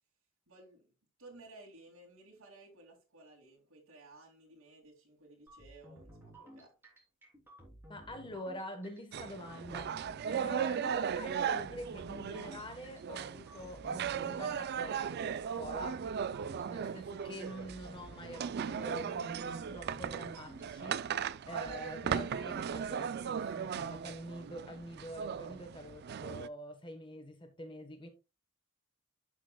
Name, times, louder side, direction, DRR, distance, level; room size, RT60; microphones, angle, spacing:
voice 1, 0.5-0.9 1.2-6.7, right 2 dB, 80° right, 2.5 m, -56 dB
sound 1, 5.5-23.6, right 1 dB, 10° right, 3.4 m, -55 dB
voice 2, 7.9-10.0 10.2-16.0 16.7-21.1 21.5-28.1, equal, 25° left, 1.2 m, -46 dB
sound 2, 9.1-26.5, right 7 dB, 50° right, 0.3 m, -37 dB
11.5 x 6.0 x 2.3 m
head